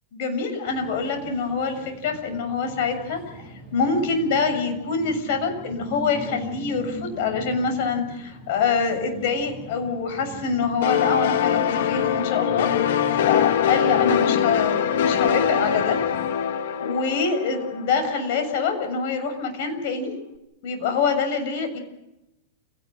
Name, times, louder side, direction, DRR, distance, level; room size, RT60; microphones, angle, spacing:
voice 1, 0.1-3.2 3.7-16.0 16.8-20.1 20.6-21.8, left 5 dB, 55° left, 6 dB, 7.0 m, -25 dB
sound 1, 0.7-16.3, equal, 20° left, 7.8 m, -41 dB
sound 2, 10.8-18.3, left 9 dB, 70° left, 1.8 m, -23 dB
29.5 x 18.5 x 6.4 m, 0.90 s
supercardioid pair, 155°, 0 cm